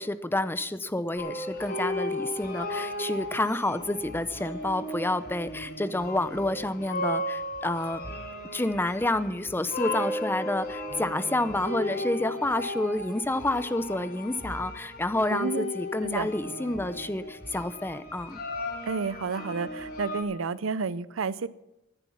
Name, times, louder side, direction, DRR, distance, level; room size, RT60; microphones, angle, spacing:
voice 1, 0.0-8.0 8.5-18.4, left 1 dB, 10° left, 13 dB, 0.6 m, -29 dB
sound 1, 1.2-20.2, left 1 dB, 55° left, 4.2 m, -35 dB
voice 2, 15.3-15.7 16.0-16.3 18.9-21.5, right 5 dB, 85° right, 18 dB, 0.6 m, -30 dB
14.0 x 10.0 x 7.2 m, 0.92 s
head